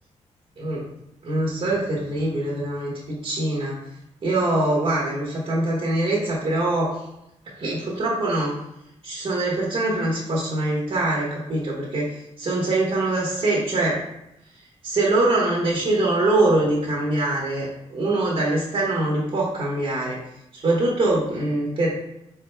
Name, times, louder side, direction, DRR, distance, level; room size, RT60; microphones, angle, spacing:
voice 1, 1.2-3.8 4.2-7.0 7.6-8.5 9.0-14.0 14.8-20.2 20.5-21.9, right 2 dB, 50° right, -4 dB, 1.3 m, -23 dB
4.6 x 4.4 x 2.2 m, 0.83 s
cardioid pair, 80°, 12 cm